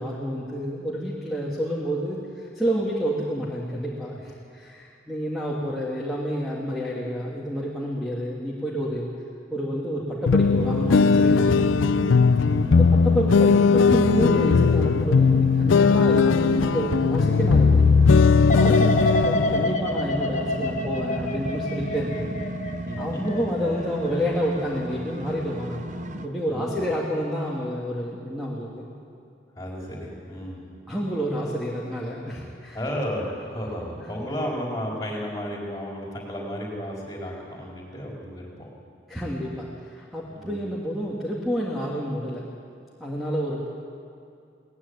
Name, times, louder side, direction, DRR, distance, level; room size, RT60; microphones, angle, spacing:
voice 1, 0.0-9.1 9.5-11.7 12.7-18.1 18.6-22.3 23.0-25.9 26.2-28.9 30.9-32.8 39.1-42.5 43.0-43.7, equal, ahead, -5 dB, 2.0 m, -29 dB
sound 1, 10.3-19.7, left 5 dB, 90° left, 0.5 m, -18 dB
sound 2, 10.6-26.3, right 1 dB, 40° right, 0.7 m, -34 dB
voice 2, 12.4-13.1 22.8-23.2 23.7-23.9 26.5-26.8 29.5-30.6 32.7-38.7 40.3-40.5, equal, 20° left, -2 dB, 4.5 m, -33 dB
sound 3, 18.5-25.4 25.8-26.3, left 1 dB, 40° left, 1.3 m, -29 dB
18.5 x 15.0 x 9.8 m, 2.4 s
head